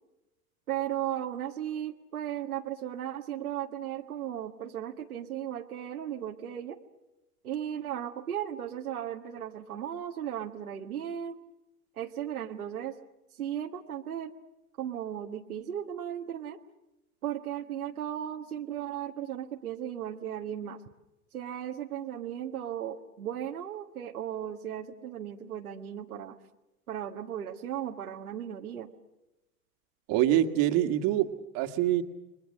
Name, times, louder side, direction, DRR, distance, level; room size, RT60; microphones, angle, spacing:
voice 1, 0.7-6.8 7.4-11.4 11.9-13.0 13.3-14.3 14.8-16.6 17.2-20.8 21.3-26.4 26.9-28.9, right 10 dB, 75° right, 2 dB, 1.7 m, -36 dB
voice 2, 30.1-32.0, right 12 dB, 50° right, 6 dB, 2.1 m, -25 dB
29.5 x 23.0 x 6.5 m, 0.96 s
figure-of-eight pair, 90°, 44 cm